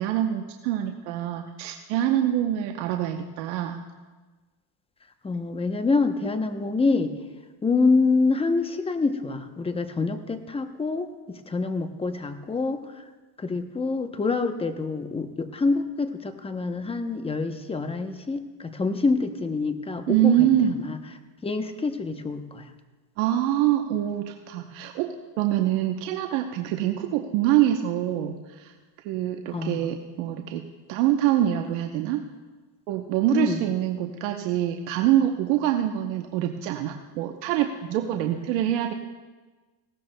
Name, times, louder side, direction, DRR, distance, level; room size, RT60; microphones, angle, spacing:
voice 1, 0.0-3.8 20.1-20.8 23.2-28.7 29.0-30.6 30.9-32.2 32.9-38.9, right 12 dB, 80° right, 4 dB, 1.0 m, -25 dB
voice 2, 5.2-7.1 7.6-13.0 13.4-20.5 20.8-21.0 21.4-22.7 29.5-29.9 33.3-33.6, left 3 dB, 10° left, 8 dB, 0.7 m, -26 dB
19.5 x 16.5 x 2.2 m, 1.3 s
supercardioid pair, 120°, 49 cm